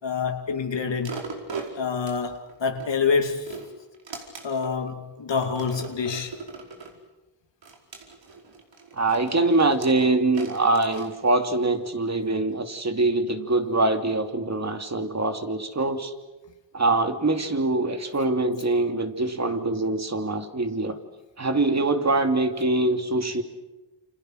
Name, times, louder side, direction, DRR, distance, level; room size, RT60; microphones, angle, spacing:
voice 1, 0.0-1.2 1.8-3.6 4.4-6.3, left 5 dB, 65° left, 2.6 m, -27 dB
sound 1, 1.0-2.9 3.3-4.8 5.4-7.0 7.6-11.8 12.3-12.4, right 4 dB, 70° right, 4.9 m, -39 dB
voice 2, 8.9-16.1 16.7-21.0 21.4-23.4, right 2 dB, 35° right, 2.9 m, -24 dB
29.0 x 27.0 x 6.5 m
cardioid pair, 70°, 46 cm